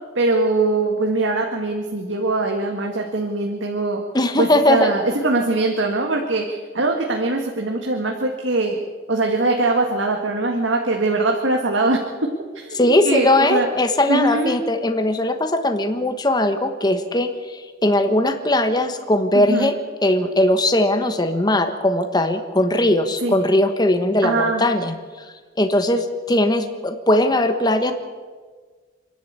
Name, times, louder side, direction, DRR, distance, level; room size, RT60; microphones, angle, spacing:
voice 1, 0.2-4.0 4.4-8.8 9.1-12.3 12.5-13.7 14.1-14.6 19.3-19.7 23.2-23.4 24.2-24.7, right 2 dB, 85° right, 2 dB, 1.9 m, -22 dB
voice 2, 4.1-4.9 12.7-19.8 20.0-25.3 25.6-27.9, left 1 dB, 20° left, 7 dB, 1.2 m, -19 dB
28.5 x 11.0 x 8.3 m, 1.5 s
head